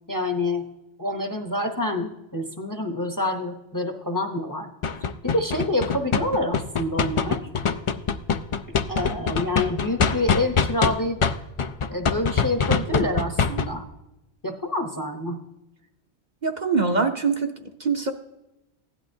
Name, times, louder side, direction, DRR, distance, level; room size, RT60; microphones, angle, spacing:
voice 1, 0.1-0.7 1.0-4.7 5.2-7.5 8.9-11.2 11.9-13.8 14.4-15.4, left 1 dB, 20° left, 4 dB, 0.7 m, -27 dB
sound 1, 4.8-10.9 11.2-13.7, left 6 dB, 55° left, 0.3 m, -23 dB
voice 2, 16.4-18.1, right 4 dB, 45° right, 4 dB, 0.7 m, -24 dB
15.5 x 11.0 x 2.7 m, 0.93 s
omnidirectional pair, 1.1 m